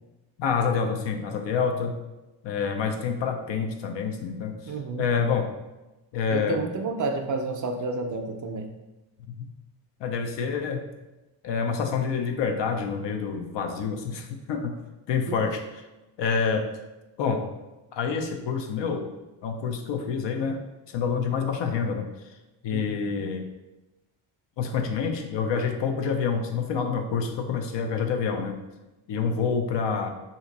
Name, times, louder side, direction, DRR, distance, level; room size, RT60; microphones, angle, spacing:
voice 1, 0.4-2.0 2.4-5.5 6.1-6.6 9.3-9.5 10.0-10.8 11.4-14.8 15.1-15.6 16.2-16.7 17.2-17.5 17.9-19.1 19.4-20.6 20.9-22.1 22.6-23.5 24.6-28.6 29.1-30.1, left 6 dB, 60° left, 4 dB, 0.6 m, -27 dB
voice 2, 4.7-5.1 6.3-8.7 15.3-15.4 22.7-22.8, right 3 dB, 40° right, 5 dB, 0.5 m, -30 dB
2.8 x 2.5 x 3.9 m, 1.0 s
supercardioid pair, 60°, 49 cm